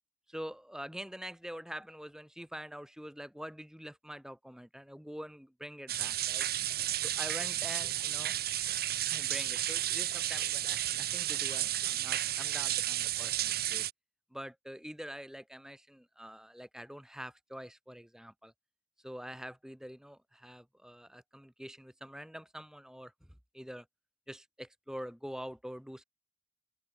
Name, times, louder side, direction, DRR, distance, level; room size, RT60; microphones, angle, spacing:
voice 1, 0.3-6.5 7.0-8.4 9.1-13.8 14.3-18.5 19.0-23.1 23.5-23.9 24.3-26.0, equal, 5° right, 2.8 m, -45 dB
sound 1, 5.9-13.9, right 12 dB, 50° right, 2.6 m, -32 dB
open air
head